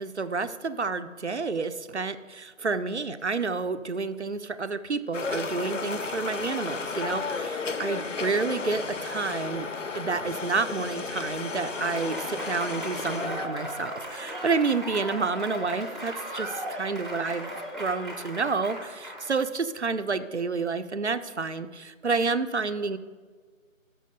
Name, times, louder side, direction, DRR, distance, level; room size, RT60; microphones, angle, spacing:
voice 1, 0.0-9.7 10.0-23.0, right 4 dB, 55° right, 12 dB, 0.5 m, -29 dB
sound 1, 5.1-13.5, left 4 dB, 65° left, 0.7 m, -33 dB
Applause / Crowd, 11.3-19.4, equal, ahead, 0.7 m, -37 dB
6.5 x 6.1 x 6.6 m, 1.5 s
figure-of-eight pair, 175°, 41 cm